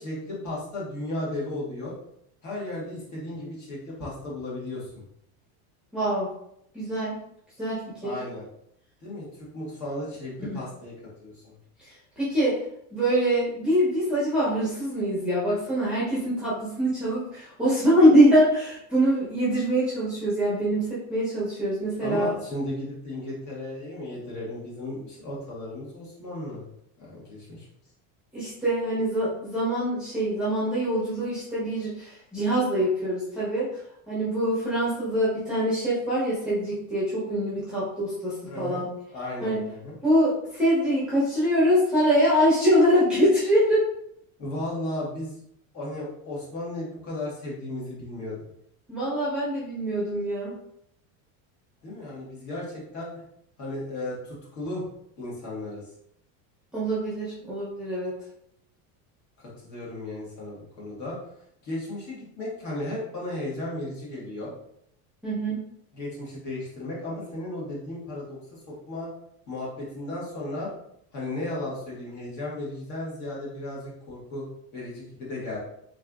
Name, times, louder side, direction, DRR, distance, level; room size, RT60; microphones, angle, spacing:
voice 1, 0.0-1.9 2.4-5.0 8.0-8.4 9.0-10.9 11.2-11.5 22.0-26.6 27.0-27.7 38.5-38.8 39.1-39.9 44.4-45.4 45.7-48.4 51.8-53.2 53.6-54.9 55.2-55.8 59.4-61.2 61.6-64.5 65.9-69.1 69.5-70.7 71.1-74.4 74.7-75.6, left 1 dB, 40° left, -5 dB, 1.5 m, -35 dB
voice 2, 5.9-6.3 6.7-7.2 7.6-8.1 10.4-10.6 12.2-12.6 12.9-22.3 28.3-33.7 34.1-38.9 39.4-39.6 40.0-43.9 48.9-50.5 56.7-58.1 65.2-65.6, equal, ahead, -9 dB, 0.9 m, -24 dB
3.8 x 3.2 x 2.3 m, 0.73 s
cardioid pair, 165°, 42 cm